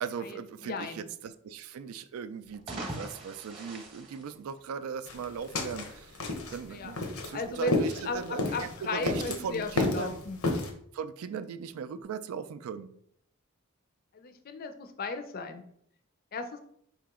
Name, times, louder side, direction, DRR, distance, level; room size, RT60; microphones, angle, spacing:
voice 1, 0.0-10.2 10.9-13.0, right 6 dB, 85° right, 13 dB, 0.3 m, -38 dB
voice 2, 0.6-1.1 6.7-10.4 14.1-15.6 16.3-16.6, left 3 dB, 45° left, 7 dB, 0.4 m, -36 dB
sound 1, 2.4-5.1, right 1 dB, 25° right, 0.8 m, -42 dB
sound 2, 5.1-10.7, left 2 dB, 85° left, 0.7 m, -32 dB
4.8 x 2.9 x 3.6 m, 0.69 s
head